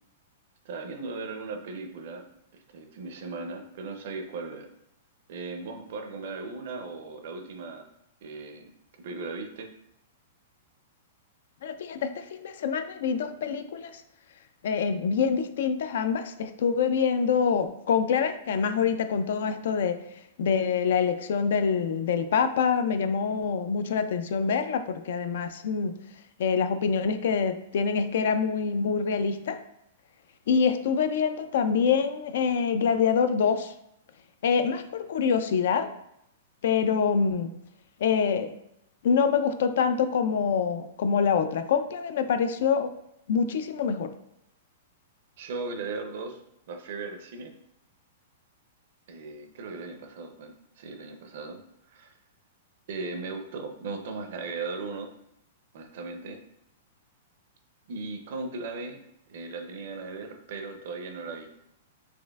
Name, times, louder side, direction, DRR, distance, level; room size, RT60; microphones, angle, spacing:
voice 1, 0.6-2.2 2.5-4.7 5.3-7.9 8.2-8.7 9.0-9.7 45.4-46.4 46.7-47.5 49.1-51.6 51.9-52.2 52.9-55.1 55.7-56.4 57.9-59.0 59.3-61.5, right 3 dB, 60° right, 6 dB, 0.5 m, -37 dB
voice 2, 11.6-14.0 14.6-20.0 20.4-26.0 26.4-29.6 30.5-33.7 34.4-35.9 36.6-37.5 38.0-38.5 39.0-42.9 43.3-44.1, left 6 dB, 70° left, 9 dB, 0.3 m, -25 dB
4.2 x 2.5 x 2.3 m, 0.78 s
hypercardioid pair, 155°, 0 cm